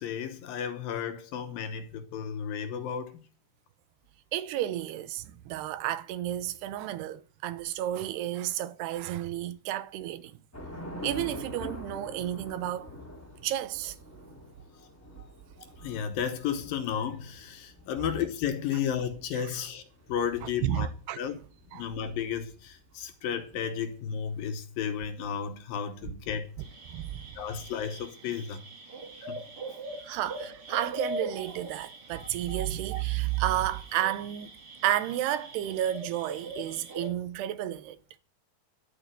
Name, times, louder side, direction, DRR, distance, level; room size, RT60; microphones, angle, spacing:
voice 1, 0.0-3.2 15.8-19.8 20.1-20.9 21.2-21.4 21.7-26.5 27.4-28.6 29.2-29.4 32.2-32.6 34.0-34.1, left 8 dB, 70° left, 2.6 m, -33 dB
voice 2, 4.3-10.3 11.0-12.9 13.4-14.0 19.3-19.5 20.4-21.2 21.7-21.9 26.9-27.2 30.0-34.5 34.8-38.0, right 13 dB, 85° right, 2.9 m, -31 dB
Thunder / Rain, 10.5-23.0, equal, 5° left, 1.5 m, -46 dB
sound 1, 26.6-37.1, right 2 dB, 40° right, 2.7 m, -42 dB
12.0 x 7.2 x 9.7 m
omnidirectional pair, 4.7 m